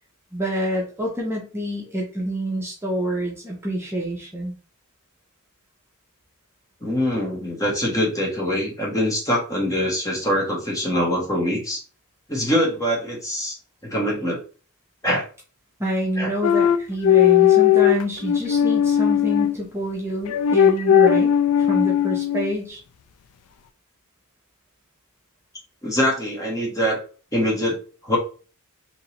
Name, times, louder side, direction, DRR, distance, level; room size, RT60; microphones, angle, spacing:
voice 1, 0.3-4.5 15.8-22.8, equal, 10° right, -3 dB, 0.9 m, -27 dB
voice 2, 6.8-11.8 12.3-13.6 13.8-14.4 15.0-15.3 16.2-16.3 25.8-27.0 27.3-28.2, equal, 15° left, -2 dB, 1.2 m, -23 dB
sound 1, 16.4-19.6 20.3-22.6, left 9 dB, 90° left, 0.4 m, -17 dB
3.7 x 2.8 x 2.9 m, 0.36 s
head